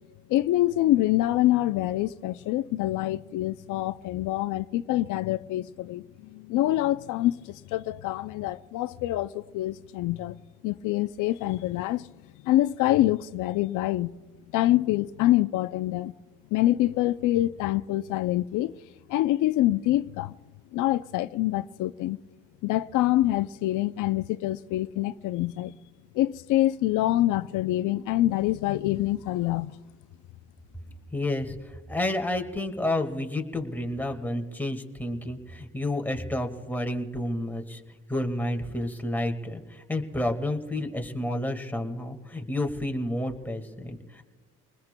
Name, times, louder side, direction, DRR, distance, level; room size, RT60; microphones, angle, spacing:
voice 1, 0.3-10.4 10.6-12.1 12.4-14.1 14.5-16.1 16.5-18.7 19.1-20.4 20.7-22.2 22.6-25.7 26.1-29.8, left 15 dB, 85° left, 0.5 m, -25 dB
voice 2, 31.1-37.8 38.1-44.2, left 1 dB, 5° left, 1.7 m, -30 dB
27.0 x 20.0 x 2.2 m
cardioid pair, 90°, 30 cm